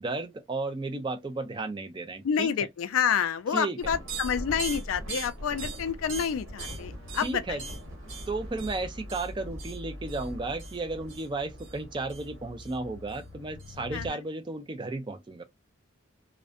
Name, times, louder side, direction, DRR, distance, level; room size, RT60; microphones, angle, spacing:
voice 1, 0.0-2.5 3.5-3.8 7.1-7.6 8.3-15.4, right 3 dB, 20° right, 0.4 m, -34 dB
voice 2, 2.2-7.6 13.9-14.1, left 7 dB, 80° left, 0.4 m, -28 dB
sound 1, 3.8-14.1, right 1 dB, 70° right, 1.3 m, -40 dB
2.5 x 2.0 x 2.4 m
head